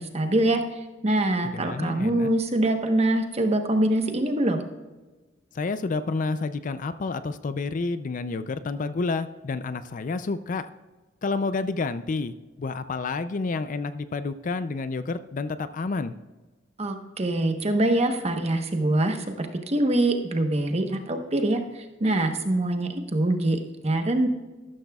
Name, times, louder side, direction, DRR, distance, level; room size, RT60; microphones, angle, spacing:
voice 1, 0.0-4.6 16.8-24.3, right 1 dB, 35° right, 5 dB, 1.1 m, -24 dB
voice 2, 1.5-2.3 5.5-10.7 11.2-16.1, left 3 dB, 45° left, 12 dB, 0.4 m, -29 dB
13.0 x 12.5 x 2.3 m, 1.2 s
head